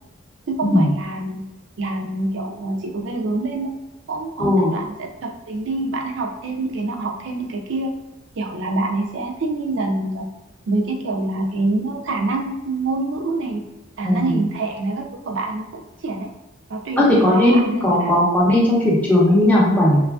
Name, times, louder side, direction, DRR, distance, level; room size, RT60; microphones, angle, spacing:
voice 1, 0.5-1.4 1.8-3.7 4.1-7.9 8.4-10.3 10.7-13.6 14.0-15.7 16.0-16.3 16.7-18.1, right 2 dB, 70° right, 1 dB, 0.5 m, -26 dB
voice 2, 4.4-4.7 14.0-14.4 17.0-20.0, left 1 dB, 10° left, -6 dB, 0.6 m, -16 dB
3.0 x 2.3 x 2.3 m, 1.0 s
head